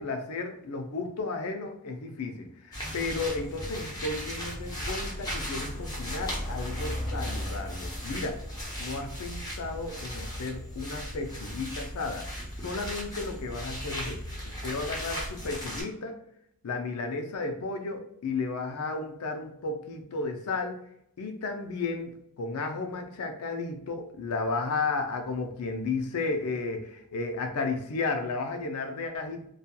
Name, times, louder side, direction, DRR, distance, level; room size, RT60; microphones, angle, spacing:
voice 1, 0.0-8.4 8.8-12.3 12.6-14.2 14.6-16.2 16.6-20.8 21.2-29.5, left 3 dB, 90° left, 5 dB, 0.5 m, -33 dB
sound 1, 2.7-15.8, equal, 20° left, 0.6 m, -36 dB
2.8 x 2.3 x 2.2 m, 0.71 s
head